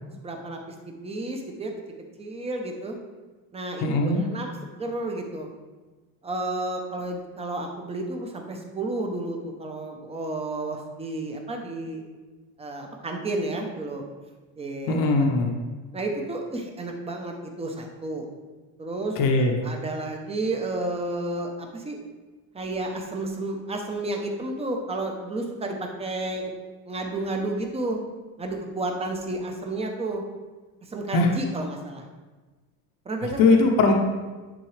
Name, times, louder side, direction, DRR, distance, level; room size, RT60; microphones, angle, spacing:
voice 1, 0.1-0.6 1.0-1.7 2.2-3.0 3.5-3.9 4.1-5.5 6.2-12.0 12.6-14.0 14.6-15.3 15.9-18.3 18.8-19.2 19.6-22.0 22.5-26.5 26.9-28.0 28.4-30.2 30.9-32.0 33.1-33.5, right 2 dB, 15° right, 2 dB, 0.7 m, -31 dB
voice 2, 3.8-4.2 14.9-15.5 19.2-19.5 31.1-31.3 33.4-33.9, left 3 dB, 60° left, 2 dB, 0.9 m, -20 dB
10.0 x 3.7 x 3.2 m, 1.3 s
cardioid pair, 150°, 37 cm